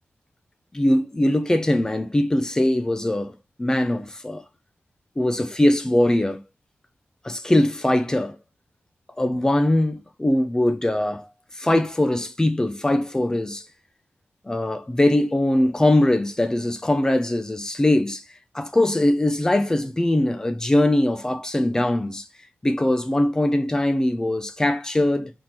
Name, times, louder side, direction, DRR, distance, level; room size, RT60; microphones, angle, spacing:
voice 1, 0.7-3.3 3.6-4.4 5.2-6.4 7.2-8.4 9.2-11.2 11.6-13.6 14.5-18.2 18.5-22.2 22.6-25.3, left 1 dB, 15° left, 0.7 m, -21 dB
5.0 x 4.4 x 5.9 m
wide cardioid pair, 150°, 5 cm